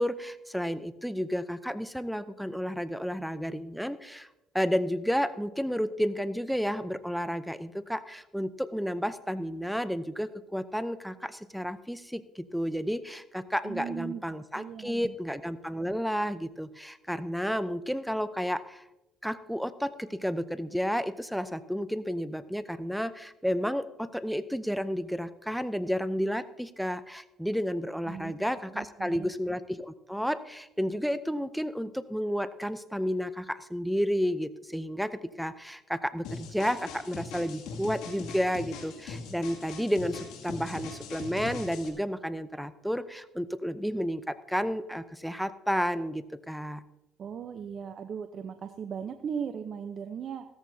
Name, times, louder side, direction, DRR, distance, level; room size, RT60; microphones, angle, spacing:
voice 1, 0.0-4.3 4.5-18.8 19.2-46.8, equal, ahead, 13 dB, 0.6 m, -31 dB
voice 2, 13.6-14.2 14.5-15.1 28.1-28.3 28.7-29.3 47.2-50.5, right 7 dB, 45° right, 7 dB, 0.8 m, -37 dB
sound 1, 36.2-41.9, left 4 dB, 80° left, 2.3 m, -41 dB
16.0 x 13.5 x 2.8 m, 0.94 s
cardioid pair, 105°, 0 cm